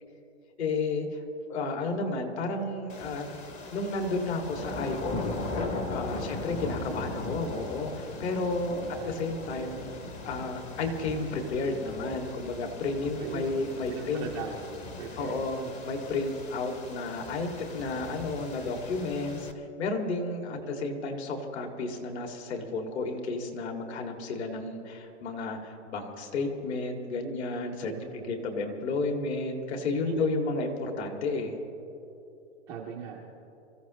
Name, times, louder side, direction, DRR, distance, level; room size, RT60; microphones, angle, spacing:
voice 1, 0.6-1.2 1.5-3.3 3.7-5.3 5.9-9.8 10.2-14.2 15.2-31.6, left 3 dB, 55° left, 3 dB, 2.4 m, -32 dB
sound 1, 2.9-19.5, left 3 dB, 20° left, 0.7 m, -39 dB
voice 2, 8.7-9.2 13.2-13.4 13.9-15.9 19.0-19.5 20.5-21.0 27.8-28.5 30.1-30.4 32.7-33.2, right 5 dB, 10° right, -5 dB, 0.3 m, -41 dB
26.5 x 14.5 x 3.1 m, 3.0 s
hypercardioid pair, 145°, 38 cm